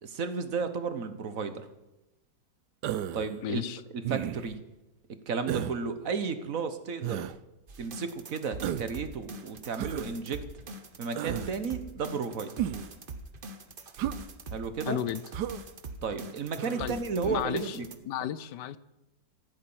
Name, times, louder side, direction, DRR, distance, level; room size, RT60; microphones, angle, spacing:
voice 1, 0.0-1.6 3.1-3.6 3.9-4.6 5.1-7.2 7.8-10.4 11.0-12.5 14.5-15.0 16.0-17.9, right 5 dB, 55° right, 10 dB, 1.6 m, -33 dB
Human voice, 2.8-3.3 4.0-4.6 5.5-5.8 7.0-7.4 8.6-9.0 9.8-10.1 11.2-11.5 12.6-12.9 14.0-14.2 15.3-15.6 16.6-16.9, right 11 dB, 75° right, 1.2 m, -33 dB
voice 2, 3.4-3.8 14.9-15.2 16.8-17.0 17.2-17.8 18.1-18.8, left 11 dB, 75° left, 17 dB, 1.3 m, -33 dB
sound 1, 7.7-18.0, right 2 dB, 35° right, 1.0 m, -43 dB
14.5 x 8.8 x 8.8 m, 1.0 s
omnidirectional pair, 1.9 m